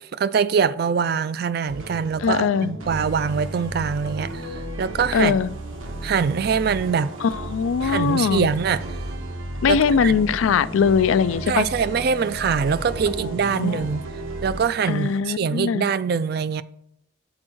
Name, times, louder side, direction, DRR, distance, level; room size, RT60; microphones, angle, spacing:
voice 1, 0.1-4.4 4.8-5.4 6.0-7.1 7.8-8.8 9.7-10.2 11.5-14.0 14.4-16.6, right 6 dB, 50° right, 0.3 m, -23 dB
sound 1, 1.7-14.6, right 1 dB, 85° right, 1.3 m, -34 dB
voice 2, 2.2-2.7 5.1-5.5 7.2-8.5 9.6-11.6 13.2-13.8 14.9-15.8, left 6 dB, 80° left, 0.4 m, -21 dB
sound 2, 2.9-15.2, right 2 dB, 70° right, 0.9 m, -43 dB
Wind instrument woodwind instrument, 10.3-14.4, left 3 dB, 40° left, 0.8 m, -45 dB
7.7 x 4.4 x 6.0 m
head